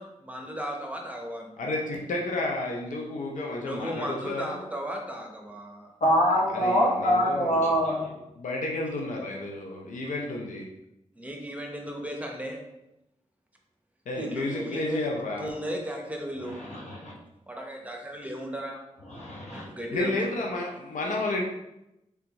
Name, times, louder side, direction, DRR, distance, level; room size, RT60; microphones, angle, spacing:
voice 1, 0.0-1.7 3.6-5.9 11.2-12.6 14.2-15.1 15.4-16.6 17.5-18.8 19.5-20.3, equal, 10° right, 1 dB, 0.9 m, -35 dB
voice 2, 1.6-4.6 6.5-7.9 8.4-10.7 14.1-15.5 19.9-21.4, left 2 dB, 85° left, 0 dB, 0.5 m, -31 dB
voice 3, 6.0-8.1 16.7-17.1 19.1-19.6, equal, 65° left, -4 dB, 1.3 m, -24 dB
3.4 x 3.3 x 3.0 m, 0.88 s
cardioid pair, 40°, 13 cm